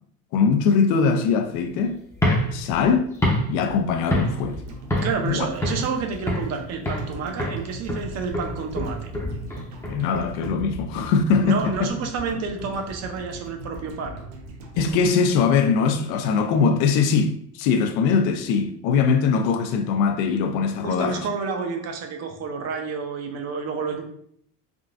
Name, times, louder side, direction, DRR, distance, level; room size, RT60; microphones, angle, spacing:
voice 1, 0.3-2.0 2.5-3.1 3.5-4.6 5.2-5.5 9.8-11.9 14.7-21.3, left 5 dB, 75° left, 0.5 m, -21 dB
sound 1, 2.1-4.6 4.9-5.3 5.6-6.6 6.9-7.1 7.4-10.5, left 1 dB, 10° left, 0.6 m, -26 dB
sound 2, 4.1-16.3 16.6-16.7, right 1 dB, 80° right, 0.8 m, -40 dB
voice 2, 5.0-9.1 11.4-14.2 20.8-24.0, right 5 dB, 45° right, 0.6 m, -29 dB
3.7 x 2.4 x 2.4 m
cardioid pair, 125°, 37 cm